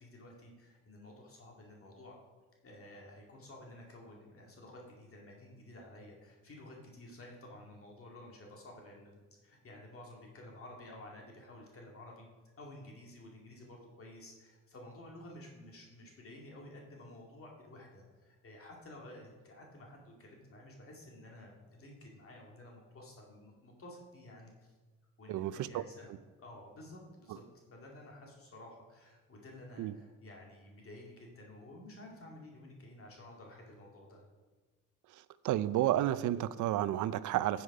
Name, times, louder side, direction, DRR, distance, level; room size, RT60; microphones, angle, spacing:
voice 1, 0.0-2.2 2.6-12.3 12.6-24.7 25.2-26.1 26.4-27.4 27.7-34.3, left 1 dB, 45° left, 0 dB, 2.3 m, -52 dB
voice 2, 25.3-25.8 29.8-29.9 35.4-37.6, right 13 dB, 75° right, 16 dB, 0.5 m, -31 dB
9.8 x 7.1 x 4.9 m, 1.3 s
cardioid pair, 90°, 30 cm